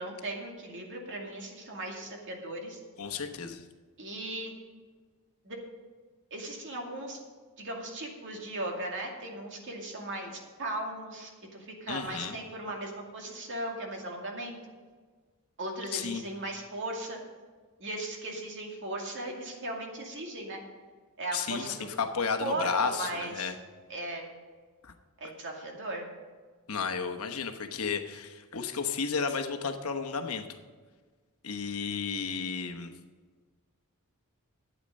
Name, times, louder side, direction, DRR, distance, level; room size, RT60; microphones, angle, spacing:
voice 1, 0.0-2.8 4.0-4.6 5.4-5.6 6.3-7.2 7.6-14.6 15.6-17.2 17.8-20.6 21.2-21.9 22.4-23.5 23.9-24.3 25.2-26.0, right 1 dB, 55° right, 1 dB, 2.3 m, -37 dB
voice 2, 3.0-3.6 11.9-12.4 15.9-16.2 21.3-23.6 24.8-24.9 26.7-30.5 31.4-32.9, left 5 dB, 70° left, 6 dB, 1.1 m, -33 dB
12.0 x 8.9 x 5.3 m, 1.5 s
head